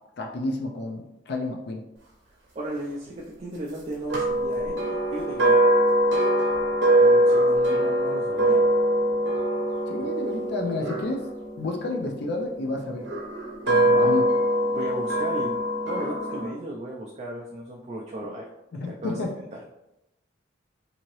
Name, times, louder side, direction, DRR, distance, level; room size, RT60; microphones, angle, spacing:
voice 1, 0.2-1.8 9.9-11.3 11.6-13.1 13.7-14.2 18.7-19.3, left 2 dB, 55° left, 1 dB, 0.4 m, -30 dB
voice 2, 2.5-5.6 7.0-8.6 13.9-14.2 14.7-15.6 15.9-18.5 18.9-19.2 19.5-19.6, right 1 dB, 35° right, -2 dB, 0.3 m, -35 dB
sound 1, 4.1-12.3 13.0-16.5, right 1 dB, 65° right, 0.7 m, -22 dB
2.7 x 2.7 x 3.0 m, 0.92 s
head